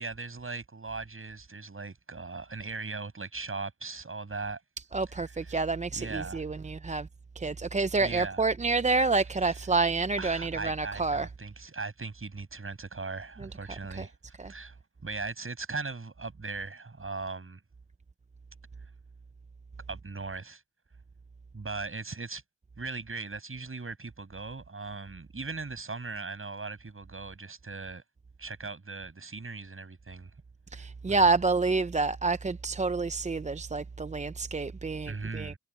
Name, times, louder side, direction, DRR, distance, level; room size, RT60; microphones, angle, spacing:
voice 1, 0.0-4.6 5.3-5.6 5.9-6.4 7.9-8.4 9.5-9.6 10.2-14.1 14.4-17.6 19.9-20.6 21.5-22.4 22.8-28.0 28.4-30.3 31.1-31.3 35.1-35.6, right 3 dB, 40° right, 7.9 m, -39 dB
voice 2, 4.9-7.1 7.4-11.3 13.9-14.1 14.4-14.5 30.7-35.5, right 3 dB, 20° right, 0.6 m, -28 dB
cardioid pair, 50°, 33 cm